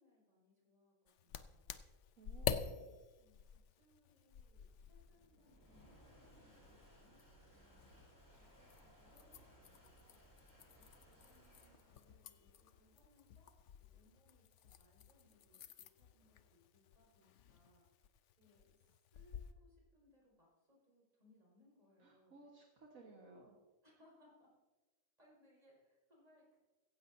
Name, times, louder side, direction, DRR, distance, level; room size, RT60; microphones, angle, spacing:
voice 1, 0.0-1.8 2.2-2.7 3.2-10.4 10.7-13.5 13.8-18.1 18.4-22.4 23.8-24.5 25.2-26.6, left 2 dB, 30° right, -4 dB, 5.2 m, -71 dB
sound 1, 1.1-19.5, left 8 dB, 65° left, 0.9 m, -49 dB
voice 2, 2.2-2.9 22.0-23.6, right 3 dB, 75° right, -1 dB, 1.8 m, -59 dB
sound 2, 2.9-15.9, equal, 15° left, 4.9 m, -66 dB
16.5 x 15.0 x 2.7 m, 1.2 s
omnidirectional pair, 1.4 m